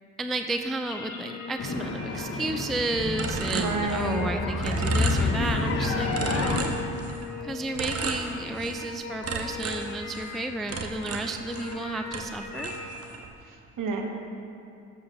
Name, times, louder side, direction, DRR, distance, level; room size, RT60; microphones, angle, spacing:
voice 1, 0.2-6.7 7.4-12.7, right 2 dB, ahead, 6 dB, 0.3 m, -32 dB
sound 1, 0.8-12.9, left 3 dB, 90° left, 0.8 m, -40 dB
sound 2, 1.6-6.6, left 3 dB, 40° left, 1.0 m, -28 dB
sound 3, 3.2-4.3 4.6-5.7 6.1-7.3 7.8-8.9 9.2-11.8 12.1-13.3, right 4 dB, 40° right, 0.9 m, -34 dB
voice 2, 3.5-4.3 13.4-14.0, right 4 dB, 55° right, 2 dB, 1.4 m, -30 dB
14.0 x 7.1 x 2.7 m, 2.6 s
hypercardioid pair, 50°, 38 cm